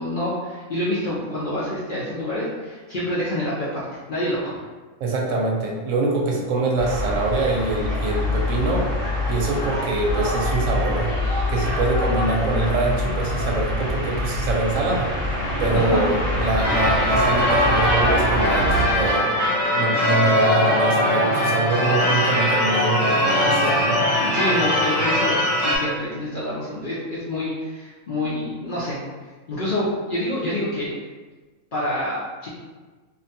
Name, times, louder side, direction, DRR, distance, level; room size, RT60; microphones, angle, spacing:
voice 1, 0.0-4.6 15.7-16.0 24.2-29.0 29.5-30.9 31.7-32.5, left 1 dB, 80° left, -8 dB, 0.4 m, -27 dB
voice 2, 5.0-8.9 9.3-11.1 11.5-15.1 15.6-19.4 19.8-24.0, right 2 dB, 70° right, -1 dB, 0.9 m, -24 dB
sound 1, 6.8-18.9, left 1 dB, 45° right, 1.0 m, -25 dB
Church bell / Car / Alarm, 16.6-25.8, left 1 dB, 30° right, 0.3 m, -21 dB
2.6 x 2.2 x 2.6 m, 1.3 s
omnidirectional pair, 1.5 m